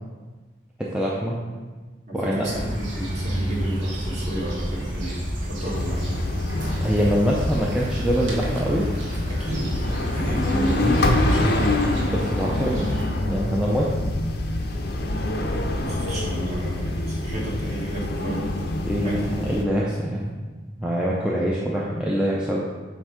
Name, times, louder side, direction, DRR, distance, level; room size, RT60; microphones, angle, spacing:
voice 1, 0.8-1.4 2.1-2.5 6.8-8.9 10.4-11.0 12.1-12.9 13.2-13.9 18.8-20.3 20.8-22.6, equal, 5° right, -5 dB, 0.5 m, -24 dB
voice 2, 2.1-6.3 9.3-11.9 15.7-18.7 19.0-19.4, right 1 dB, 35° right, -5 dB, 1.6 m, -32 dB
sound 1, 2.4-13.0, equal, 75° right, 1.2 m, -30 dB
sound 2, 5.7-19.6, left 1 dB, 55° left, 0.5 m, -26 dB
7.7 x 2.7 x 4.8 m, 1.3 s
head